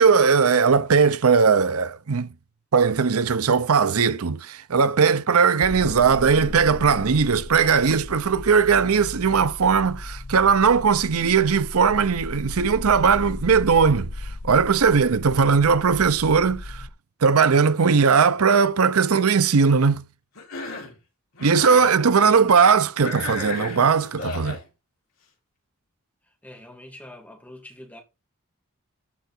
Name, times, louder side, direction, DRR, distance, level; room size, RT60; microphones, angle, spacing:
voice 1, 0.0-2.3 2.7-16.9 17.2-20.0 21.4-24.6, right 5 dB, 90° right, 0.7 m, -19 dB
sound 1, 5.6-16.9, left 2 dB, 40° left, 0.7 m, -36 dB
Cough, 20.4-21.0 21.3-21.9 23.0-24.6, left 3 dB, 75° left, 4.3 m, -33 dB
voice 2, 21.7-22.2 26.2-28.0, left 1 dB, 5° left, 2.6 m, -46 dB
13.5 x 4.8 x 4.4 m
head